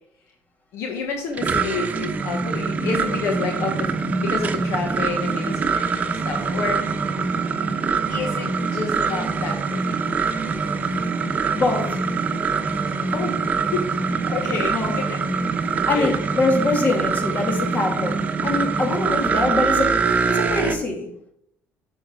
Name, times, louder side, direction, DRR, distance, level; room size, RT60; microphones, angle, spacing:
voice 1, 0.7-3.9 4.2-7.0 8.1-10.0 13.1-13.4 13.7-13.9 14.3-15.2 15.9-16.1, left 4 dB, 65° left, 3 dB, 1.2 m, -29 dB
sound 1, 1.1-20.8, right 5 dB, 35° right, 1.0 m, -24 dB
voice 2, 11.5-12.0 14.7-15.0 15.8-20.0 20.3-21.1, left 2 dB, 35° left, 2 dB, 2.4 m, -23 dB
8.5 x 6.3 x 3.7 m, 0.72 s
cardioid pair, 100°, 5 cm